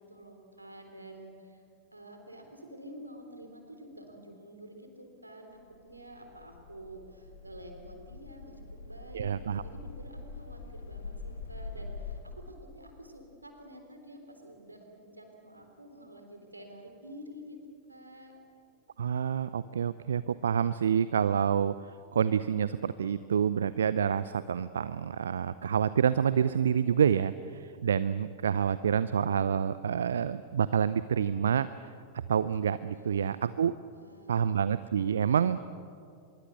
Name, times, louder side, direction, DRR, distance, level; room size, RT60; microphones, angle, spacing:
voice 1, 0.1-1.6 1.9-8.6 8.9-17.6 17.9-18.4 32.9-33.6 33.9-34.4, right 1 dB, 85° right, 5 dB, 3.7 m, -49 dB
sound 1, 5.6-12.2, left 4 dB, 70° left, 2.5 m, -44 dB
voice 2, 9.1-9.6 19.0-21.7 22.1-31.9 32.3-33.7 34.3-35.6, right 8 dB, 65° right, 16 dB, 0.5 m, -28 dB
25.0 x 23.0 x 7.9 m, 2.4 s
figure-of-eight pair, 90°, 0 cm